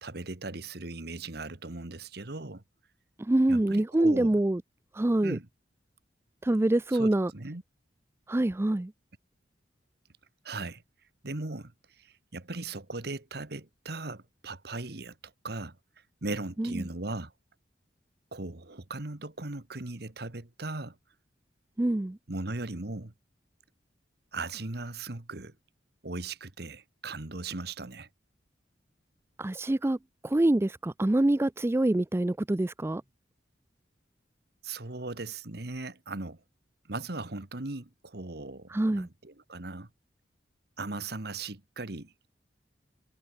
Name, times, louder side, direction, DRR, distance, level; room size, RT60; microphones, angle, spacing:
voice 1, 0.0-2.6 3.5-4.4 5.2-5.5 6.9-7.6 10.4-10.8 11.2-11.7 12.3-15.1 15.4-15.7 16.2-17.3 18.3-20.9 22.3-23.1 24.3-25.5 26.0-28.1 34.6-36.4 36.9-39.9 40.8-42.3, right 2 dB, 60° right, 1.6 m, -38 dB
voice 2, 3.2-4.6 4.9-5.4 6.4-7.3 8.3-8.9 16.6-16.9 21.8-22.2 29.4-30.0 30.2-33.0 38.7-39.1, right 1 dB, 15° right, 0.4 m, -25 dB
head